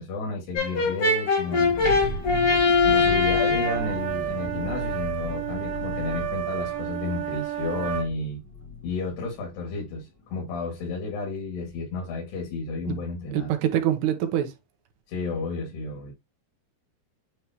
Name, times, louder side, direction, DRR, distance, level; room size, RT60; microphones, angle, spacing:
voice 1, 0.0-1.7 2.8-8.4 8.8-13.5 15.1-16.1, left 4 dB, 70° left, 4.3 m, -32 dB
Brass instrument, 0.5-3.9, left 3 dB, 50° left, 1.7 m, -22 dB
sound 1, 1.4-10.8 11.1-11.2 11.5-11.8, left 3 dB, 10° left, 1.5 m, -36 dB
sound 2, 3.6-8.1, right 13 dB, 60° right, 3.2 m, -31 dB
voice 2, 13.3-14.5, right 11 dB, 80° right, 3.0 m, -25 dB
9.6 x 3.4 x 2.9 m
omnidirectional pair, 4.9 m